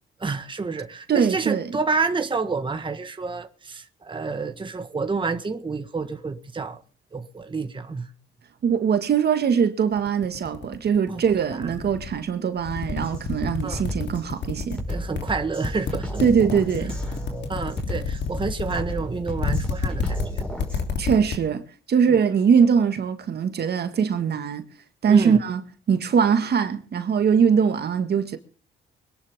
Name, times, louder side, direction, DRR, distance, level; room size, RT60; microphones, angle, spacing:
voice 1, 0.2-6.8 7.1-8.1 11.1-11.2 13.6-13.8 14.9-16.2 17.5-20.4 22.1-22.2 25.1-25.4, right 4 dB, 25° right, 1.5 m, -29 dB
voice 2, 1.1-1.7 8.6-14.8 16.2-16.9 21.0-24.7 25.0-25.6 25.9-28.4, right 7 dB, 55° right, 1.8 m, -22 dB
sound 1, 10.0-12.2 12.6-15.2 15.6-21.4, left 5 dB, 60° left, 3.2 m, -28 dB
Drum kit, 13.0-13.2 13.7-20.9, equal, 5° left, 5.1 m, -34 dB
24.5 x 11.0 x 3.7 m
cardioid pair, 90°, 20 cm